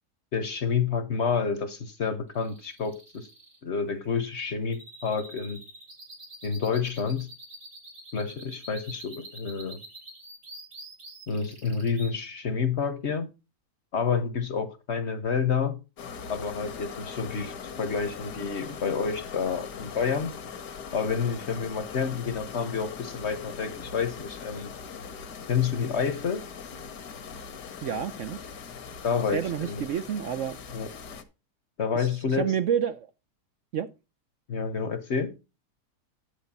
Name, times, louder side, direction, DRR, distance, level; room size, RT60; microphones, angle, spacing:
voice 1, 0.3-3.3 3.6-5.6 6.4-7.3 8.1-9.8 11.3-13.3 13.9-15.8 16.3-20.3 20.9-24.7 25.5-26.4 29.0-29.8 30.7-30.9 31.8-32.5 34.5-35.3, left 6 dB, 45° left, 1.1 m, -29 dB
sound 1, 2.3-12.1, right 1 dB, 85° right, 4.8 m, -46 dB
sound 2, 16.0-31.2, left 6 dB, 75° left, 1.8 m, -41 dB
voice 2, 27.8-28.5 29.3-30.6 31.9-33.1 33.7-33.9, right 8 dB, 60° right, 0.8 m, -29 dB
10.5 x 7.9 x 4.1 m
omnidirectional pair, 1.8 m